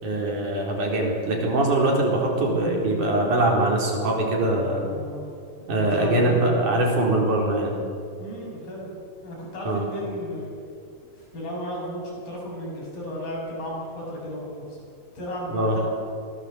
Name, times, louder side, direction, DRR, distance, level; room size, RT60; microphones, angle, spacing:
voice 1, 0.0-4.8 5.7-7.7 9.7-9.8 15.5-15.8, right 1 dB, 55° right, -1 dB, 5.4 m, -22 dB
voice 2, 4.8-5.3 5.9-6.5 8.2-8.9 9.2-10.5 11.3-14.8 15.2-15.8, equal, 70° left, -4 dB, 9.4 m, -34 dB
23.5 x 17.0 x 8.3 m, 2.4 s
omnidirectional pair, 4.3 m